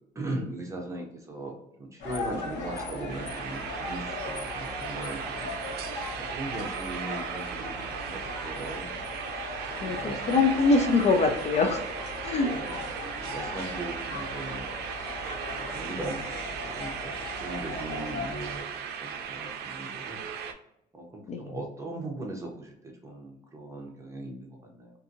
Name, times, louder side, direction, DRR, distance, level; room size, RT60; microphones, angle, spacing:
voice 1, 0.0-5.5 6.1-7.7 8.0-8.9 9.7-10.4 12.4-12.8 13.2-14.7 15.5-17.1 17.4-20.2 20.9-24.9, right 2 dB, 15° right, 0 dB, 0.8 m, -39 dB
sound 1, 2.0-18.6, left 2 dB, 75° left, 1.1 m, -38 dB
sound 2, 3.1-20.5, right 7 dB, 70° right, 0.4 m, -37 dB
voice 2, 9.8-11.8 12.2-12.5 21.3-21.6, left 3 dB, 40° left, 5 dB, 0.4 m, -24 dB
2.6 x 2.6 x 2.5 m, 0.79 s
cardioid pair, 110°, 17 cm